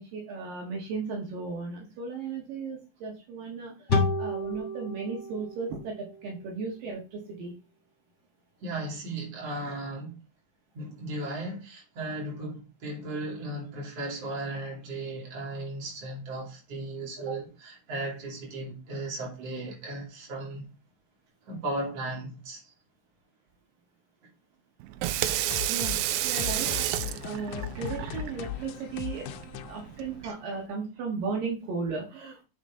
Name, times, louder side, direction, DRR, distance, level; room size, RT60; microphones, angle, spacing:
voice 1, 0.0-3.8 4.2-7.5 25.7-26.9 27.2-29.3 29.6-32.4, right 4 dB, 70° right, 3.2 m, -35 dB
sound 1, 3.9-7.3, left 3 dB, 25° left, 1.9 m, -31 dB
voice 2, 8.6-10.2 10.7-20.7 21.4-22.6 30.2-30.3, right 2 dB, 45° right, 3.6 m, -36 dB
Water tap faucet / Sink (filling or washing), 24.8-30.3, right 14 dB, 85° right, 2.4 m, -31 dB
sound 2, 25.2-30.7, left 11 dB, 85° left, 1.7 m, -38 dB
8.4 x 5.7 x 3.8 m
omnidirectional pair, 4.2 m